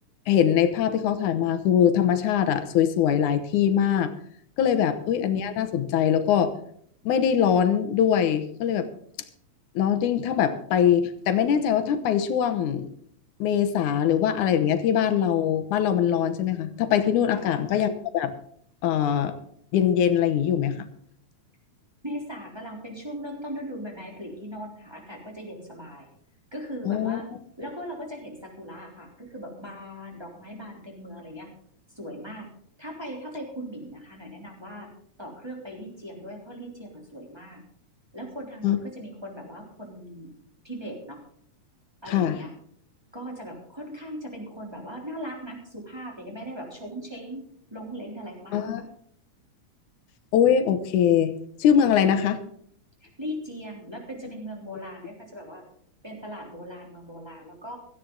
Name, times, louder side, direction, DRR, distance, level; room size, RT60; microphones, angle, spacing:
voice 1, 0.3-4.1 4.6-6.5 7.1-8.9 9.8-12.9 13.4-18.3 18.8-19.4 19.7-20.9 26.9-27.2 38.6-38.8 42.1-42.4 48.5-48.8 50.3-51.3 51.6-52.4, left 9 dB, 85° left, 9 dB, 2.5 m, -22 dB
voice 2, 22.0-26.1 26.5-27.3 27.6-31.5 31.9-32.5 32.8-34.9 35.2-37.6 38.1-40.3 40.6-41.2 42.0-42.5 43.1-47.4 47.7-48.8 52.0-52.2 53.0-55.6 56.0-57.8, equal, 10° right, -1 dB, 3.2 m, -39 dB
17.0 x 13.5 x 3.9 m, 0.65 s
omnidirectional pair, 3.4 m